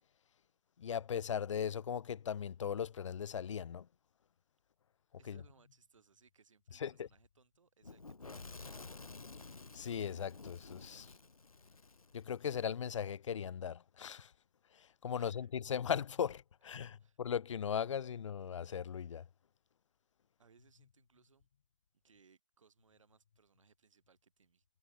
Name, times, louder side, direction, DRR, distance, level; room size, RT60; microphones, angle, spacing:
voice 1, 0.8-3.9 5.3-5.4 6.8-7.1 9.7-11.1 12.1-14.3 14.7-19.2, left 8 dB, 60° left, 0.5 m, -38 dB
voice 2, 5.2-8.9 15.1-15.5 17.0-17.2 20.4-21.5 22.0-24.6, right 5 dB, 65° right, 3.4 m, -68 dB
Fire / Explosion, 7.8-12.7, left 3 dB, 90° left, 1.7 m, -52 dB
figure-of-eight pair, 150°, 18 cm